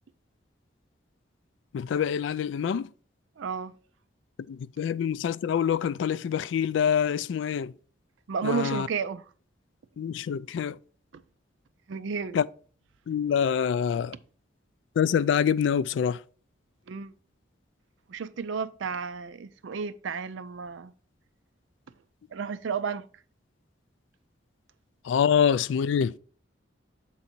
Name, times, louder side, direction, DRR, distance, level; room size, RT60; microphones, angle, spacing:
voice 1, 1.7-2.9 4.5-7.7 8.4-8.9 10.0-10.8 12.3-12.5 13.1-14.1 15.0-16.2 25.1-26.2, left 7 dB, 75° left, 0.3 m, -25 dB
voice 2, 3.4-3.7 8.3-9.2 11.1-11.2 11.9-12.4 16.9-17.1 18.1-20.9 22.3-23.1, right 6 dB, 80° right, 0.4 m, -32 dB
7.2 x 3.9 x 4.3 m
head